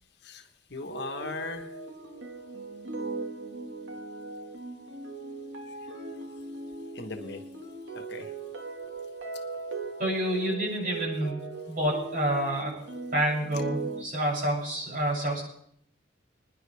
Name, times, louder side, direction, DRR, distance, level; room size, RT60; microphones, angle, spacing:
voice 1, 0.7-1.7 6.9-7.4 7.9-8.3, left 3 dB, 60° left, 6 dB, 1.4 m, -38 dB
sound 1, 0.9-14.0, right 3 dB, 80° right, 1.8 m, -39 dB
voice 2, 10.0-12.7 13.1-15.4, right 1 dB, 50° right, -3 dB, 7.6 m, -28 dB
27.5 x 10.5 x 3.5 m, 0.68 s
head